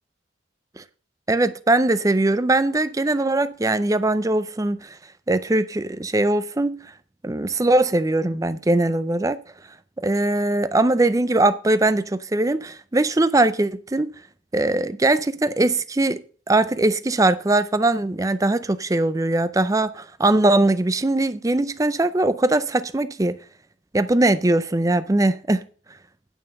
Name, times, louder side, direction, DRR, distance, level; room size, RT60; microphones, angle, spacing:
voice 1, 1.3-5.0 5.3-6.8 7.2-9.4 10.0-14.1 14.5-23.4 23.9-25.6, right 2 dB, 15° right, 0.4 m, -21 dB
9.1 x 5.5 x 6.5 m
head